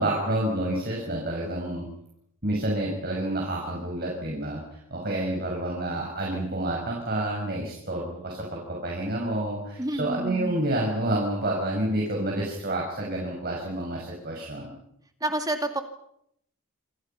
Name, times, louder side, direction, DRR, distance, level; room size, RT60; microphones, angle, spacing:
voice 1, 0.0-1.9 2.4-14.7, right 1 dB, 45° right, -1 dB, 6.3 m, -29 dB
voice 2, 9.8-10.7 15.2-15.8, right 1 dB, 15° right, 5 dB, 2.3 m, -29 dB
27.5 x 27.0 x 5.8 m, 0.76 s
head